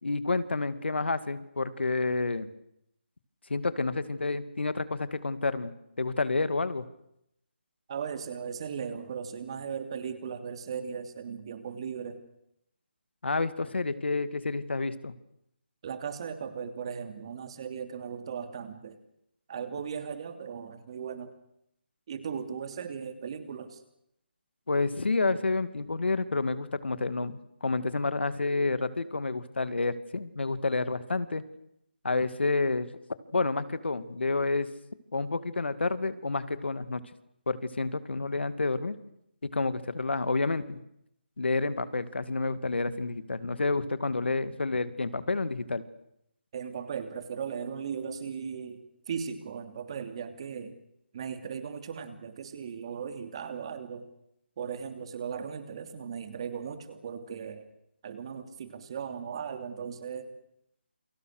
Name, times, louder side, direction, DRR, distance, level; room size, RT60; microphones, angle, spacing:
voice 1, 0.0-2.5 3.5-5.7 6.0-6.8 13.2-15.1 24.7-31.4 32.0-32.9 33.3-34.7 35.1-37.0 37.5-39.0 39.4-40.8 41.4-45.8, left 3 dB, 80° left, 13 dB, 2.5 m, -29 dB
voice 2, 7.9-12.2 15.8-19.0 19.5-21.3 22.1-23.8 46.5-48.8 49.1-50.7 51.1-54.0 54.6-57.7 58.0-60.3, right 7 dB, 30° right, 9 dB, 2.9 m, -37 dB
29.0 x 27.0 x 6.7 m, 0.78 s
hypercardioid pair, 170°, 6 cm